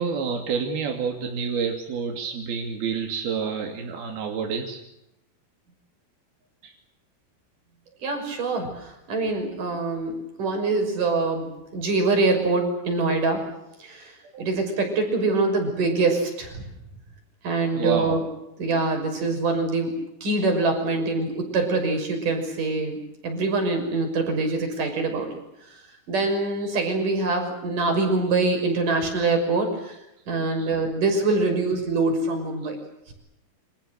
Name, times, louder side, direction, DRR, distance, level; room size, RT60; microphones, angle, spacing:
voice 1, 0.0-4.8 6.6-6.7 17.7-18.2 26.6-26.7 30.5-30.7, right 6 dB, 90° right, 3 dB, 4.6 m, -28 dB
voice 2, 8.0-13.4 13.8-16.6 17.4-18.2 18.6-19.9 20.2-25.3 26.1-30.0 30.3-32.8, right 3 dB, 60° right, 5 dB, 7.6 m, -24 dB
29.5 x 26.0 x 6.6 m, 0.86 s
omnidirectional pair, 4.3 m